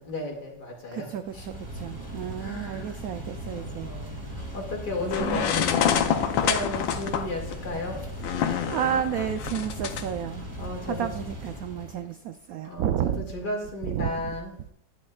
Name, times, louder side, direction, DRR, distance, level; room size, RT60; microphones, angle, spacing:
voice 1, 0.0-1.1 1.3-1.5 2.4-2.9 3.5-5.7 6.2-8.0 10.6-11.1 12.6-14.5, left 2 dB, 60° left, 0 dB, 2.8 m, -34 dB
voice 2, 0.9-3.9 5.2-5.8 8.7-13.3 13.8-14.1, right 9 dB, 75° right, 9 dB, 0.8 m, -31 dB
sound 1, 1.2-12.0, right 1 dB, 10° right, 2.4 m, -38 dB
sound 2, 5.1-10.0, left 8 dB, 90° left, 1.5 m, -27 dB
11.0 x 10.5 x 2.4 m, 0.72 s
omnidirectional pair, 2.0 m